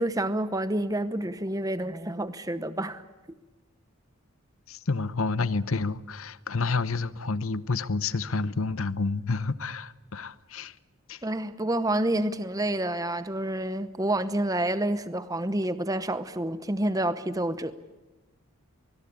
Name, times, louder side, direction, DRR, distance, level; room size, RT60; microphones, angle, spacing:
voice 1, 0.0-3.0 11.2-17.7, right 1 dB, 15° right, 0.8 m, -28 dB
voice 2, 4.7-10.7 11.1-11.2, left 3 dB, 70° left, 0.9 m, -29 dB
24.0 x 21.0 x 8.4 m
head